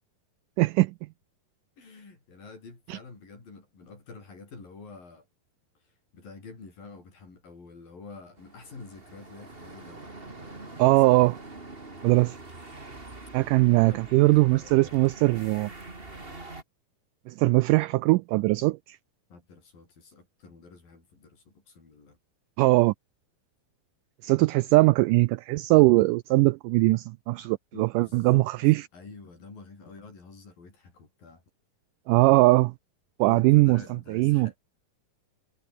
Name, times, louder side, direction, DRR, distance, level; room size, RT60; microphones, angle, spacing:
voice 1, 0.6-0.9 2.9-3.0 10.8-11.4 12.0-12.4 13.3-15.7 17.3-19.0 22.6-22.9 24.2-28.9 32.1-32.7 33.2-33.8 34.1-34.5, right 20 dB, 85° right, 1.8 m, -21 dB
voice 2, 1.8-5.3 6.1-11.2 13.6-14.0 14.3-15.0 19.3-22.2 27.7-28.5 28.7-31.4 33.3-34.6, left 4 dB, 65° left, 9.1 m, -48 dB
sound 1, 8.4-16.6, right 2 dB, 15° right, 2.8 m, -44 dB
omnidirectional pair, 4.3 m